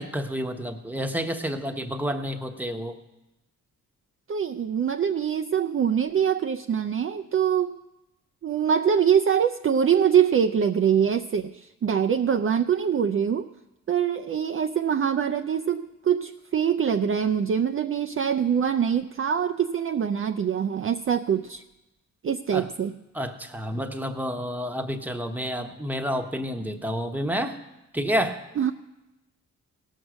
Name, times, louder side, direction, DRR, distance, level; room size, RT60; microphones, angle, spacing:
voice 1, 0.0-3.0 22.5-22.7 23.1-27.6 27.9-28.4, equal, 5° right, 6 dB, 1.0 m, -29 dB
voice 2, 4.3-7.8 8.4-13.5 13.9-21.6 22.2-22.9 28.6-28.7, right 8 dB, 40° right, 7 dB, 0.4 m, -24 dB
17.0 x 6.4 x 6.1 m, 0.96 s
cardioid pair, 85°, 33 cm